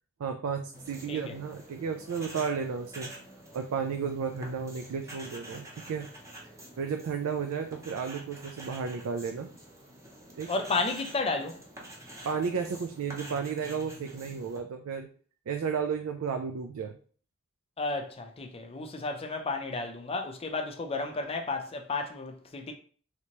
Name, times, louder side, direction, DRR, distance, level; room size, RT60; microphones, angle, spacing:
voice 1, 0.2-3.1 3.5-6.1 6.8-9.5 10.3-10.5 12.2-15.1 15.5-16.9, right 6 dB, 80° right, 0.4 m, -33 dB
sound 1, 0.7-14.6, equal, 15° right, 0.8 m, -47 dB
voice 2, 10.5-11.6 17.8-22.7, left 3 dB, 30° left, 0.5 m, -32 dB
3.3 x 2.8 x 2.9 m
head